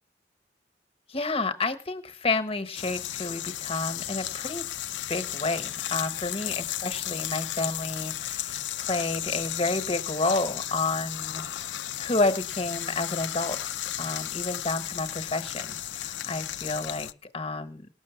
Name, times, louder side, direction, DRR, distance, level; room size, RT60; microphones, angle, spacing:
voice 1, 1.1-4.7 5.1-11.4 12.0-13.6 14.0-17.9, left 3 dB, 30° left, 9 dB, 1.1 m, -30 dB
sound 1, 2.7-17.1, left 12 dB, 85° left, 0.6 m, -34 dB
19.0 x 6.3 x 7.0 m, 0.39 s
head